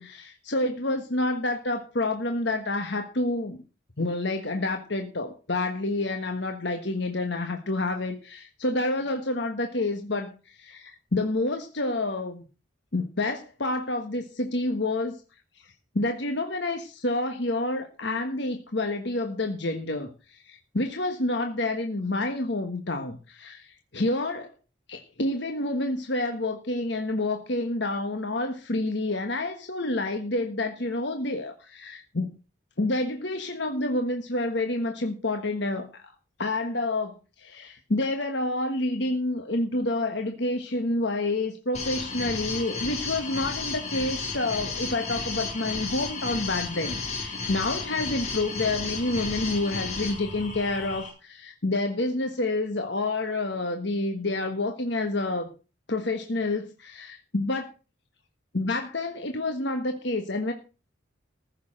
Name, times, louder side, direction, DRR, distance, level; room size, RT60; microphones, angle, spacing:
voice 1, 0.0-3.6 4.0-12.4 12.9-15.2 15.6-15.7 15.9-24.5 24.9-32.3 32.8-36.1 36.4-55.5 55.9-57.7 58.5-60.5, left 2 dB, 60° left, 5 dB, 1.4 m, -28 dB
sound 1, 41.7-51.1, left 4 dB, 35° left, 3.7 m, -33 dB
14.5 x 6.6 x 6.4 m, 0.34 s
head